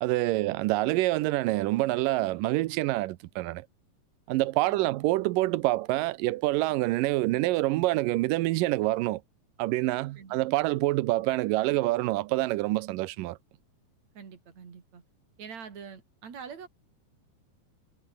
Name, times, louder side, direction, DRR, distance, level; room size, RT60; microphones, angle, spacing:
voice 1, 0.0-3.7 4.3-9.2 9.6-13.4, right 18 dB, 90° right, 2.4 m, -26 dB
voice 2, 14.1-15.0 15.4-16.7, right 6 dB, 55° right, 4.7 m, -45 dB
omnidirectional pair, 3.8 m